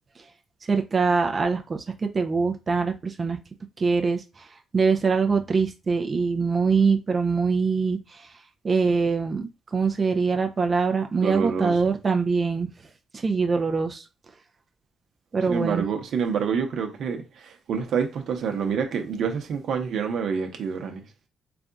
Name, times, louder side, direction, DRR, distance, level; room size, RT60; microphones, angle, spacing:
voice 1, 0.6-3.4 3.8-4.5 4.7-8.3 8.6-12.7 13.1-14.0 15.3-15.8, right 4 dB, 35° right, 0.4 m, -23 dB
voice 2, 11.2-11.8 15.5-21.0, right 6 dB, 70° right, 0.8 m, -27 dB
3.4 x 2.4 x 3.9 m
cardioid pair, 90°, 0 cm